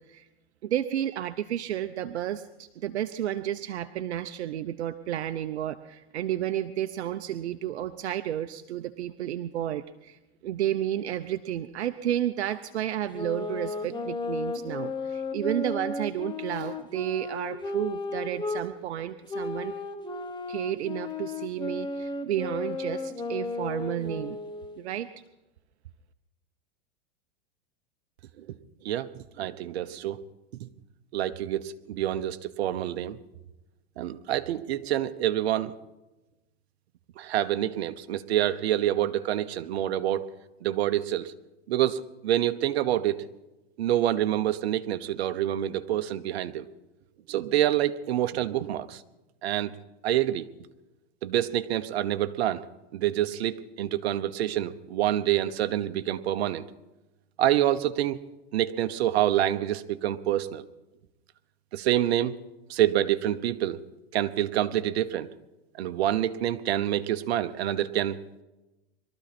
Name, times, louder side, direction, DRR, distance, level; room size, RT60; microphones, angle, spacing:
voice 1, 0.6-19.7 20.5-24.4 24.8-25.1, right 11 dB, 85° right, 10 dB, 0.8 m, -31 dB
sound 1, 13.1-18.6 19.3-24.9, left 3 dB, 15° left, 1.4 m, -34 dB
voice 2, 28.8-30.2 30.6-30.7 31.1-33.2 34.0-35.7 37.2-40.3 40.6-41.3 41.7-43.3 43.8-46.7 47.3-49.0 49.4-49.8 50.0-50.5 51.2-52.6 52.9-56.6 57.4-58.2 58.5-60.6 61.7-62.4 62.7-63.8 64.1-65.3 65.8-68.4, right 12 dB, 70° right, 11 dB, 1.1 m, -27 dB
22.5 x 13.5 x 4.3 m, 1.0 s
hypercardioid pair, 125°, 33 cm